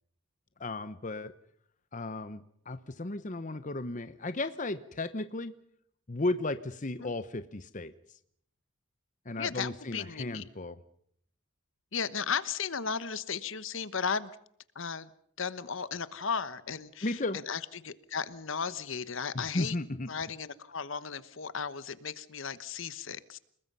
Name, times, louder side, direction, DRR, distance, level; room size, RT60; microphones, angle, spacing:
voice 1, 0.6-1.3 1.9-5.6 6.1-7.9 9.3-10.8 17.0-17.4 19.3-20.1, left 2 dB, 35° left, 12 dB, 0.9 m, -35 dB
voice 2, 9.4-10.5 11.9-14.3 14.7-15.1 15.4-19.8 20.1-23.4, left 6 dB, 65° left, 15 dB, 1.1 m, -35 dB
29.5 x 19.5 x 5.5 m, 0.67 s
head